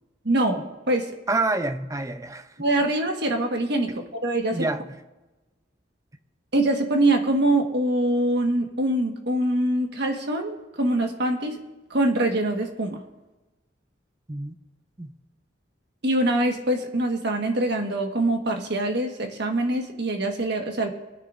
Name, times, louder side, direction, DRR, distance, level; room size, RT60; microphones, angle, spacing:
voice 1, 0.2-1.1 2.6-4.7 6.5-11.6 11.9-13.0 16.0-20.9, right 1 dB, 60° right, 3 dB, 1.5 m, -24 dB
voice 2, 1.3-2.5 3.9-4.0 4.5-5.0 14.3-14.5 15.0-15.1, right 2 dB, 15° right, 10 dB, 0.6 m, -27 dB
25.5 x 9.8 x 2.6 m, 1.1 s
head